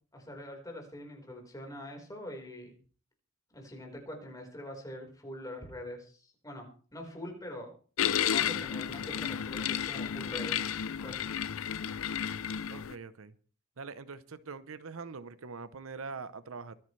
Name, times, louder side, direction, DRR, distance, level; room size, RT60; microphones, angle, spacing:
voice 1, 0.1-2.7 3.5-6.6 6.9-7.7 8.3-10.6 10.9-11.2, left 1 dB, 15° left, 4.4 m, -44 dB
sound 1, 8.0-12.9, left 9 dB, 75° left, 0.5 m, -32 dB
voice 2, 12.7-13.3 13.8-16.7, right 4 dB, 75° right, 0.8 m, -43 dB
23.5 x 10.5 x 3.3 m
head